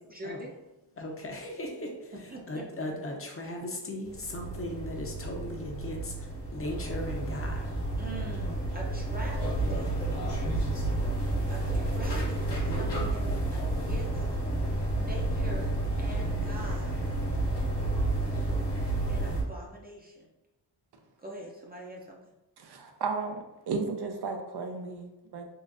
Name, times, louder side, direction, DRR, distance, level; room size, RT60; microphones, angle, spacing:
voice 1, 0.1-0.5 2.1-2.6 8.0-9.9 11.5-14.2 14.9-15.7 16.0-17.0 19.1-20.3 21.2-22.3, right 1 dB, 20° right, -3 dB, 0.6 m, -43 dB
voice 2, 1.0-2.1 2.5-7.7, left 1 dB, 30° left, 1 dB, 0.7 m, -37 dB
sound 1, 4.1-19.4, right 2 dB, 70° left, 1.1 m, -30 dB
voice 3, 22.6-25.5, right 4 dB, 65° right, 4 dB, 0.6 m, -34 dB
3.7 x 2.5 x 2.5 m, 0.99 s
cardioid pair, 85°, 42 cm